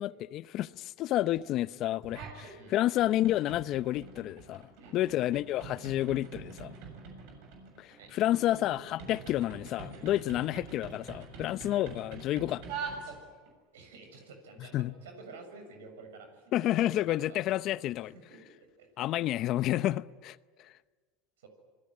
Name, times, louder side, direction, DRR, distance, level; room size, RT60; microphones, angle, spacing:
voice 1, 0.0-4.6 4.9-6.7 7.8-12.6 14.7-14.9 16.5-18.1 19.0-20.7, left 14 dB, 50° left, 0.7 m, -30 dB
sound 1, 2.0-2.5 2.9-13.5, right 4 dB, 65° right, 7.2 m, -45 dB
voice 2, 8.0-8.8 9.9-10.1 13.1-13.3 13.7-17.4 18.0-19.1 21.4-21.5, right 3 dB, 90° right, 6.9 m, -50 dB
26.5 x 21.0 x 9.9 m
supercardioid pair, 105°, 0 cm